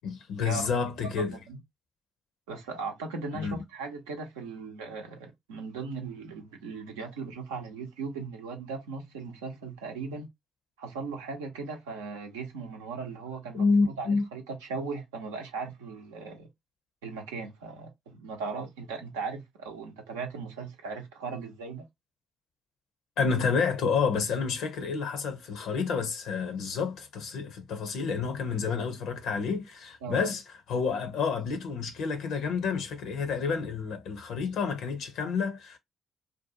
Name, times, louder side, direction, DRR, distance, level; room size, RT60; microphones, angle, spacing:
voice 1, 0.0-1.4 3.3-3.6 13.5-14.3 23.2-30.4 30.7-35.8, left 5 dB, 65° left, 0.5 m, -29 dB
voice 2, 1.2-1.6 2.5-10.3 10.8-13.6 14.0-16.5 17.0-21.8 30.0-30.3, right 4 dB, 80° right, 0.6 m, -38 dB
2.6 x 2.2 x 2.6 m
figure-of-eight pair, 40°, 0 cm